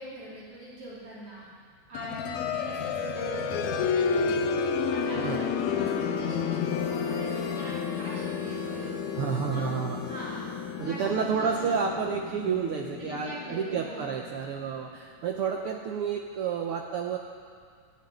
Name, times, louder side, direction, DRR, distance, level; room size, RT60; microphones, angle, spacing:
voice 1, 0.0-1.5 1.9-4.4 4.8-9.0 9.5-9.7 10.0-10.5 10.8-11.7 13.0-14.2, right 1 dB, 45° right, -8 dB, 4.1 m, -42 dB
sound 1, 1.9-14.5, left 6 dB, 85° left, 2.4 m, -31 dB
Harmonica, 6.6-11.6, left 4 dB, 65° left, 2.6 m, -48 dB
voice 2, 9.2-10.0 10.8-17.2, right 6 dB, 80° right, 2 dB, 1.2 m, -30 dB
14.5 x 7.9 x 9.5 m, 2.1 s
omnidirectional pair, 3.5 m